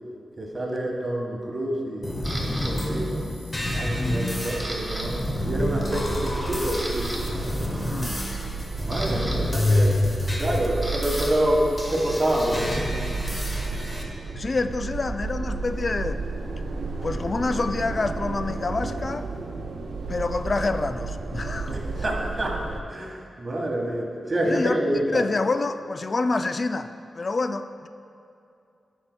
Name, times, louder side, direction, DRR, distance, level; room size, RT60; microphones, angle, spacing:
voice 1, 0.4-3.3 3.7-5.1 5.4-7.2 8.8-10.0 10.4-12.8 21.7-22.6 22.9-25.2, right 1 dB, 40° right, 0 dB, 1.4 m, -27 dB
sound 1, 2.0-14.0, left 1 dB, 20° left, 1.3 m, -28 dB
Camera, 2.2-2.7 3.3-3.7 4.0-5.1 5.3-5.5 6.1-6.2 6.6-7.2 8.4-11.3 11.6-14.2, equal, 10° right, 1.5 m, -37 dB
sound 2, 4.4-22.8, right 3 dB, 80° right, 0.5 m, -33 dB
voice 2, 7.9-8.2 14.3-16.2 17.0-19.3 20.1-21.8 24.4-27.9, left 3 dB, 50° left, 10 dB, 0.4 m, -27 dB
13.0 x 5.3 x 2.2 m, 2.5 s
cardioid pair, 50°, 0 cm